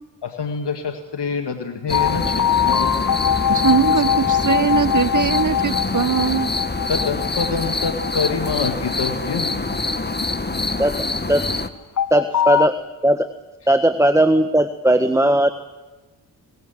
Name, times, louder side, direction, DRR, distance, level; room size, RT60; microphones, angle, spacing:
voice 1, 0.2-3.1 6.9-9.9, left 5 dB, 65° left, 6 dB, 2.0 m, -26 dB
sound 1, 1.9-11.0 12.0-12.7, left 10 dB, 40° left, 0.9 m, -23 dB
sound 2, 1.9-11.7, left 2 dB, 20° left, 1.9 m, -25 dB
voice 2, 3.5-6.5, right 7 dB, 45° right, 16 dB, 1.3 m, -20 dB
voice 3, 12.1-12.8 13.0-13.3 13.7-15.5, right 1 dB, 5° right, 9 dB, 1.5 m, -17 dB
22.0 x 20.5 x 9.4 m, 1.2 s
supercardioid pair, 45°, 44 cm